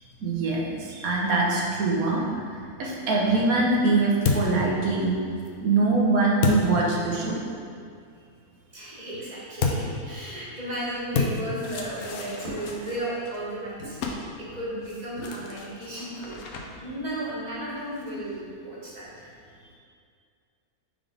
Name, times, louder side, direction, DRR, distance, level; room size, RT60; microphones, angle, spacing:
voice 1, 0.2-5.1 5.6-7.4, right 3 dB, 75° right, -3 dB, 1.3 m, -23 dB
sound 1, 3.1-7.5 9.6-18.4, left 4 dB, 75° left, 1.1 m, -33 dB
voice 2, 8.7-16.4 16.8-19.3 19.6-19.8, right 1 dB, 30° right, -8 dB, 1.4 m, -34 dB
sound 2, 11.1-11.3 12.4-12.7 13.8-13.9 15.2-15.4, right 1 dB, 50° right, 1.8 m, -38 dB
4.9 x 3.7 x 5.1 m, 2.2 s
omnidirectional pair, 1.6 m